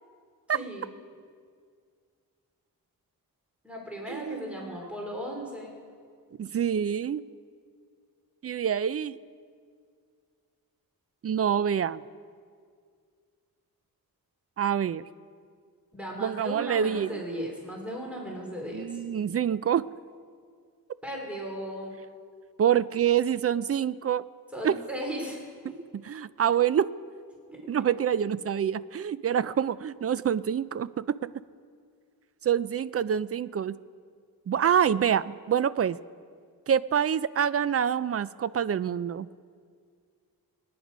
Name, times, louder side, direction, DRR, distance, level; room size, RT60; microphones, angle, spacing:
voice 1, 0.5-0.9 3.6-5.7 15.9-19.0 21.0-21.9 24.5-25.4 27.5-27.6, equal, 5° right, -1 dB, 2.8 m, -36 dB
voice 2, 4.1-4.8 6.4-7.2 8.4-9.2 11.2-12.0 14.6-15.0 16.2-17.2 18.7-19.8 22.6-24.2 24.6-24.8 26.0-26.9 27.7-31.3 32.4-33.8 34.5-36.0 36.7-39.3, right 8 dB, 40° right, 17 dB, 0.4 m, -26 dB
24.0 x 9.7 x 5.1 m, 2.1 s
wide cardioid pair, 120°, 36 cm